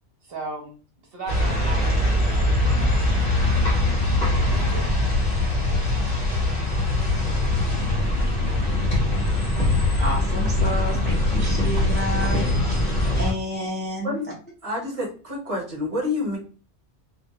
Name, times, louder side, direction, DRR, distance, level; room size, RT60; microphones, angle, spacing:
voice 1, 0.2-0.7 1.1-2.6 4.4-4.9, right 3 dB, 60° right, 0 dB, 0.9 m, -36 dB
sound 1, 1.3-13.3, left 1 dB, 45° left, 0.9 m, -22 dB
voice 2, 10.0-12.4 13.2-14.1, equal, 15° left, -3 dB, 0.4 m, -30 dB
voice 3, 14.6-16.4, left 2 dB, 35° right, -2 dB, 0.9 m, -28 dB
2.3 x 2.0 x 2.7 m, 0.37 s
omnidirectional pair, 1.2 m